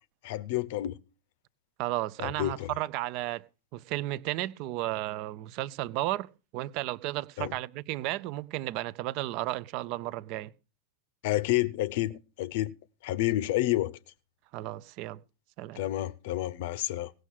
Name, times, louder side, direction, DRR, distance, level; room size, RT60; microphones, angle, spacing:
voice 1, 0.2-1.0 2.2-2.7 7.4-7.5 11.2-12.7 13.0-14.0 15.8-17.1, left 15 dB, 50° left, 0.7 m, -29 dB
voice 2, 1.8-3.4 3.7-10.5 14.5-15.2 15.6-15.8, right 16 dB, 45° right, 0.5 m, -33 dB
17.5 x 6.3 x 6.3 m
figure-of-eight pair, 90°, 0 cm